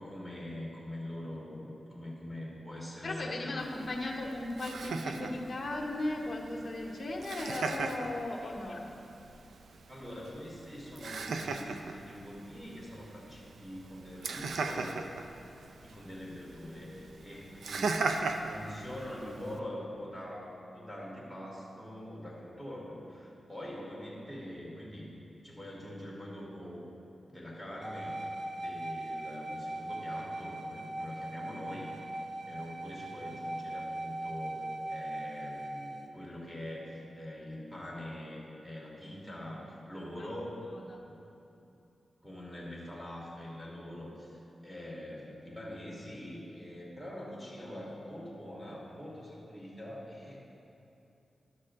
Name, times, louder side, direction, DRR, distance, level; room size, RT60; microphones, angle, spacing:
voice 1, 0.0-3.7 8.4-8.5 9.9-15.0 15.8-18.0 18.5-25.1 25.4-26.8 27.3-28.2 28.5-31.9 32.5-40.6 41.0-41.1 42.2-50.4, left 1 dB, 5° right, -5 dB, 2.1 m, -44 dB
voice 2, 3.0-8.9 40.2-40.3 40.9-41.0, left 2 dB, 40° left, -1 dB, 1.0 m, -36 dB
Laughter, 3.6-19.6, right 3 dB, 90° right, 0.4 m, -39 dB
sound 1, 27.8-36.1, right 1 dB, 40° right, 0.6 m, -39 dB
12.0 x 6.4 x 3.7 m, 2.8 s
wide cardioid pair, 100°, 0 cm